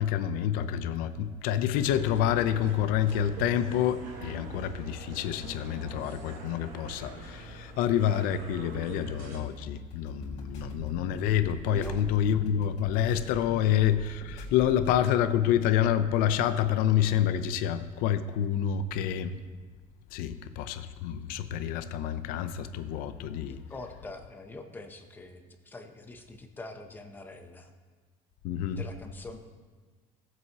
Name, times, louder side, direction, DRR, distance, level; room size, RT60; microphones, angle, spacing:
voice 1, 0.0-19.3 20.1-23.6 28.4-28.8, left 10 dB, 80° left, 12 dB, 0.6 m, -28 dB
sound 1, 1.8-9.4, right 3 dB, 65° right, 1.9 m, -43 dB
sound 2, 9.9-15.0, left 1 dB, 55° left, 2.9 m, -43 dB
voice 2, 11.6-12.0 23.5-27.7 28.8-29.4, left 2 dB, 15° left, 5 dB, 0.7 m, -44 dB
18.0 x 7.7 x 2.9 m, 1.4 s
cardioid pair, 175°, 15 cm